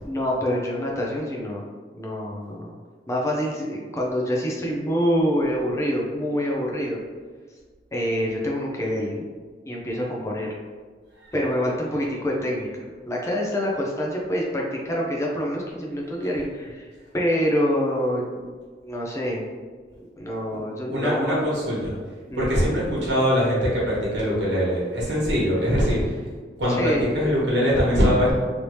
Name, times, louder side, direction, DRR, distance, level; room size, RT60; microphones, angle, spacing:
voice 1, 0.1-1.6 1.9-2.7 3.1-7.0 7.9-9.2 9.7-10.5 11.3-16.9 17.1-18.5 18.8-19.5 20.2-21.4 22.3-22.6 26.8-27.2, equal, 15° left, -2 dB, 0.5 m, -26 dB
voice 2, 20.9-21.9 22.4-26.1 26.6-28.3, equal, 80° right, -6 dB, 1.4 m, -22 dB
3.2 x 2.7 x 3.0 m, 1.5 s
head